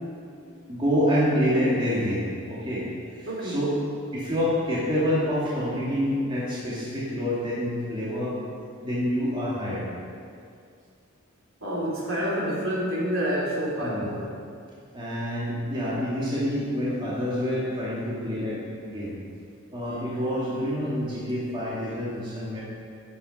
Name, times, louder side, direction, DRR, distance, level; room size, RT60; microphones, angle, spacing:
voice 1, 0.0-0.8 3.3-3.6 11.6-14.3, equal, 70° right, -5 dB, 3.6 m, -29 dB
voice 2, 0.7-2.9 3.1-3.7 4.1-8.3 8.8-9.9 13.8-14.1 14.9-19.1 19.7-22.6, equal, 25° right, -7 dB, 2.4 m, -27 dB
11.0 x 9.9 x 5.5 m, 2.3 s
head